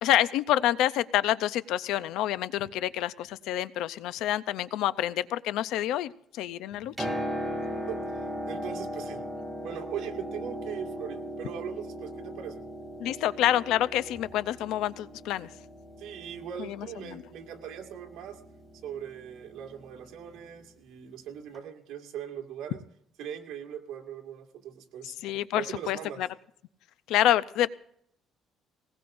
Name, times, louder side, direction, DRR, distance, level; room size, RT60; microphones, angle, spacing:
voice 1, 0.0-7.1 13.0-15.5 16.6-16.8 17.1-17.2 25.2-26.3 27.1-27.7, left 12 dB, 80° left, 15 dB, 0.5 m, -27 dB
Piano, 6.7-20.5 21.5-21.6, equal, 5° right, 2.7 m, -38 dB
voice 2, 7.9-9.2 9.6-12.6 16.0-18.4 18.8-22.8 23.2-25.2 25.5-26.2, right 9 dB, 80° right, 3 dB, 2.0 m, -40 dB
19.5 x 19.5 x 2.6 m, 0.71 s
cardioid pair, 155°, 0 cm